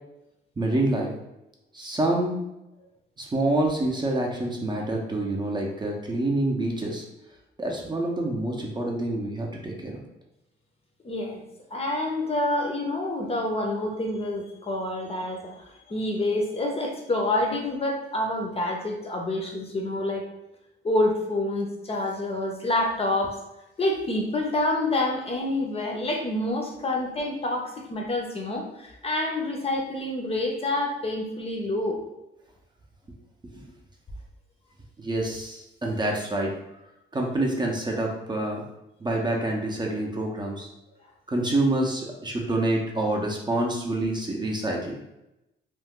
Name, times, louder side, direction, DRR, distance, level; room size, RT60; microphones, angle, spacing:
voice 1, 0.6-1.1 1.7-2.4 3.2-7.0 7.6-10.0 33.4-33.7 35.0-36.5 37.1-38.6 39.0-40.7 41.3-45.0, right 1 dB, 20° right, 0 dB, 0.6 m, -27 dB
voice 2, 11.0-11.4 11.7-20.3 20.8-23.4 23.8-32.0, left 1 dB, 30° left, 1 dB, 0.6 m, -27 dB
2.4 x 2.2 x 3.6 m, 0.91 s
cardioid pair, 90°, 20 cm